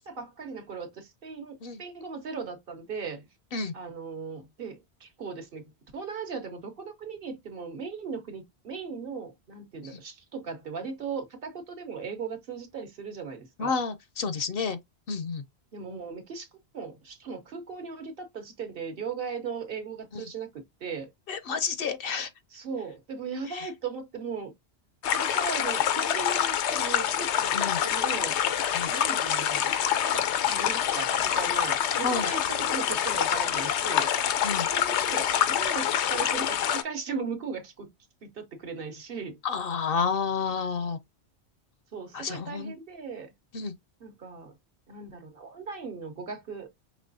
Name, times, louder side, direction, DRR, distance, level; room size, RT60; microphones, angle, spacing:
voice 1, 0.1-3.3 3.7-13.7 15.7-16.5 16.7-20.5 20.8-21.1 22.5-24.5 25.0-28.4 28.9-29.7 30.0-34.1 34.7-37.9 38.2-39.4 41.9-43.3 44.0-44.5 44.9-46.7, right 5 dB, 55° right, 1.1 m, -38 dB
voice 2, 13.6-14.8 15.1-15.4 20.1-20.2 21.3-22.3 23.5-23.7 27.5-27.8 28.7-28.9 32.0-32.3 34.4-34.7 39.4-41.0 42.1-42.7 43.5-43.7, left 5 dB, 65° left, 0.7 m, -30 dB
sound 1, 25.0-36.8, left 9 dB, 90° left, 0.9 m, -26 dB
5.2 x 2.9 x 2.6 m
omnidirectional pair, 1.1 m